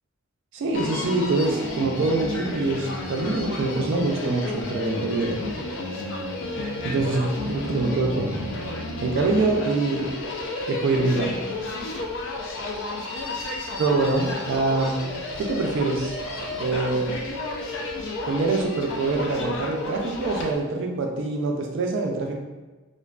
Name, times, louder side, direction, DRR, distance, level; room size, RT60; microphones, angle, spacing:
voice 1, 0.5-5.4 6.8-8.4 9.0-10.1 10.7-11.5 13.8-15.0 15.4-16.2 16.6-17.2 18.3-22.4, right 3 dB, 65° right, 1 dB, 0.3 m, -24 dB
Human voice, 0.7-20.6, left 2 dB, 65° left, 0.4 m, -32 dB
2.4 x 2.2 x 2.3 m, 1.2 s
head